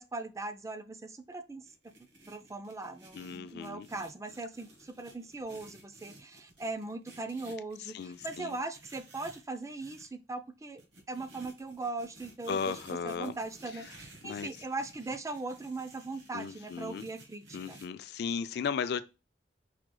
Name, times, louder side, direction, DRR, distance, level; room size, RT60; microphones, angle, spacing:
voice 1, 0.0-1.9 2.3-10.8 11.1-12.8 13.0-17.8, right 3 dB, 15° right, 0.4 m, -40 dB
sound 1, 1.6-10.1 10.8-17.9, right 2 dB, 75° right, 1.2 m, -55 dB
voice 2, 3.1-3.9 7.8-8.6 12.5-13.4 13.7-13.9 14.2-14.5 16.3-17.1 17.5-19.0, left 6 dB, 65° left, 0.3 m, -36 dB
4.8 x 3.1 x 2.2 m
head